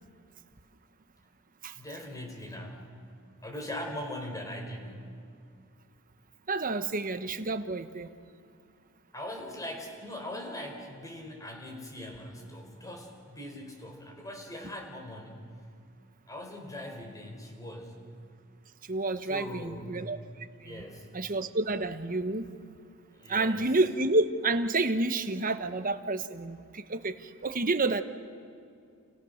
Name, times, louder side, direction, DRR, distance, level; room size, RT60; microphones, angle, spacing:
voice 1, 1.7-2.9 3.4-5.2 9.1-15.5 16.3-18.0 19.2-20.0 20.6-21.1 23.1-23.7, left 1 dB, 15° left, 2 dB, 4.5 m, -41 dB
voice 2, 6.5-8.1 18.9-20.2 20.6-20.8 21.1-22.5 23.3-28.0, right 2 dB, 40° right, 10 dB, 1.2 m, -29 dB
29.5 x 29.0 x 6.6 m, 2.4 s
head